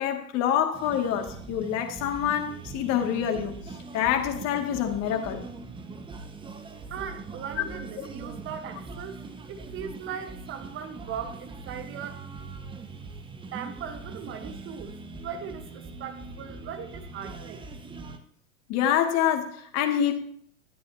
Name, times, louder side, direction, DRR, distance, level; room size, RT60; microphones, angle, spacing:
voice 1, 0.0-3.6 3.9-5.4 7.6-7.7 8.0-8.1 18.7-20.1, left 9 dB, 40° left, 4 dB, 2.5 m, -26 dB
sound 1, 0.7-18.2, right 3 dB, 10° right, 1.3 m, -42 dB
voice 2, 6.9-9.2 9.5-12.2 13.5-17.7, right 8 dB, 30° right, 7 dB, 1.4 m, -39 dB
19.0 x 13.5 x 2.9 m, 0.65 s
figure-of-eight pair, 105°, 42 cm